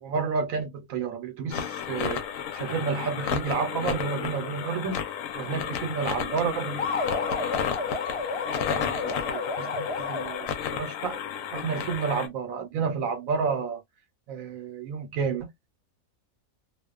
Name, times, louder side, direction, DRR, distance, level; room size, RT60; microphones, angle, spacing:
voice 1, 0.0-6.9 8.8-11.2 11.5-13.8 14.3-15.5, right 5 dB, 75° right, 1.1 m, -31 dB
sound 1, 1.5-12.3, left 8 dB, 75° left, 0.9 m, -32 dB
sound 2, 6.8-10.7, left 4 dB, 55° left, 0.3 m, -31 dB
2.4 x 2.2 x 2.3 m
omnidirectional pair, 1.5 m